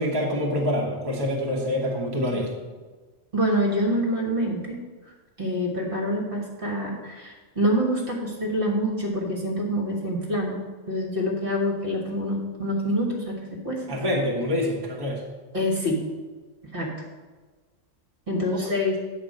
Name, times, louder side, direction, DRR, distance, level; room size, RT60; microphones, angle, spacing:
voice 1, 0.0-2.5 13.9-15.2 18.5-18.8, left 1 dB, 20° right, -3 dB, 1.3 m, -26 dB
voice 2, 3.3-4.8 5.4-10.6 10.9-13.8 15.5-16.0 16.7-16.9 18.3-19.0, equal, 45° right, -1 dB, 1.7 m, -26 dB
9.1 x 4.4 x 6.6 m, 1.3 s
omnidirectional pair, 1.4 m